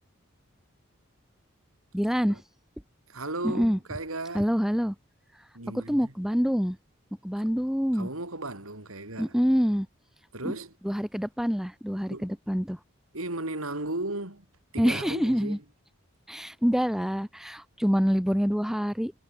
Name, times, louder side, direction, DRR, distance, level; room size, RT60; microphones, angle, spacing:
voice 1, 1.9-2.4 3.4-3.8 4.3-4.9 5.7-6.8 7.2-8.1 9.2-9.9 10.4-10.5 10.8-12.8 14.8-15.6 16.3-19.1, equal, ahead, 0.9 m, -26 dB
voice 2, 3.1-4.5 5.5-6.1 7.4-7.5 7.9-9.4 10.3-10.7 12.1-12.3 13.1-14.5 14.7-15.6, right 2 dB, 85° right, 5.8 m, -35 dB
head